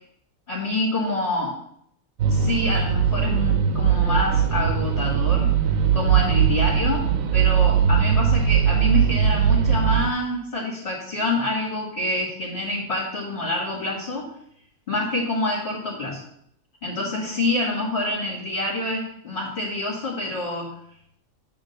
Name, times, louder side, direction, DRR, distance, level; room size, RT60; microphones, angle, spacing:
voice 1, 0.5-1.5 2.3-5.5 5.9-7.0 7.3-14.2 14.9-16.2 16.8-20.7, left 2 dB, 50° left, -5 dB, 2.2 m, -27 dB
sound 1, 2.2-10.1, right 8 dB, 90° right, 1.1 m, -20 dB
8.3 x 3.6 x 6.6 m, 0.71 s
omnidirectional pair, 1.4 m